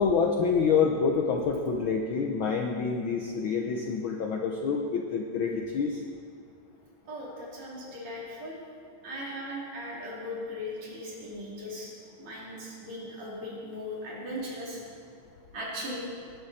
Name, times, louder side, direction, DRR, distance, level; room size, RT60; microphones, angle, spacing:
voice 1, 0.0-6.0, left 5 dB, 80° left, 3 dB, 1.1 m, -27 dB
voice 2, 7.1-8.6 9.0-11.9 12.2-14.8 15.5-16.1, left 1 dB, 65° right, -5 dB, 4.3 m, -38 dB
20.0 x 11.5 x 4.2 m, 2.3 s
omnidirectional pair, 3.3 m